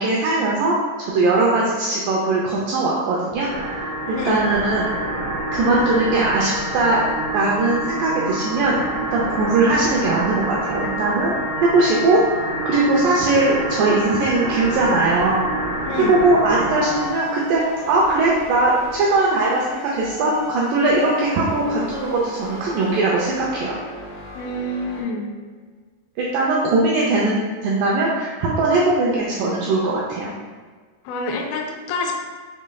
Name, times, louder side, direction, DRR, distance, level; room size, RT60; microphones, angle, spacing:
voice 1, 0.0-4.9 5.5-7.0 7.3-8.7 9.1-12.2 12.7-15.5 16.1-23.8 26.2-30.3, right 2 dB, 85° right, -4 dB, 1.9 m, -20 dB
sound 1, 3.4-17.2, right 1 dB, 55° right, 1.5 m, -27 dB
voice 2, 4.1-4.5 15.9-16.1 24.4-25.3 31.1-32.1, left 2 dB, 80° left, 1 dB, 2.3 m, -27 dB
sound 2, 16.7-25.0, left 5 dB, 65° left, 2.7 m, -36 dB
6.5 x 3.1 x 2.2 m, 1.5 s
omnidirectional pair, 4.5 m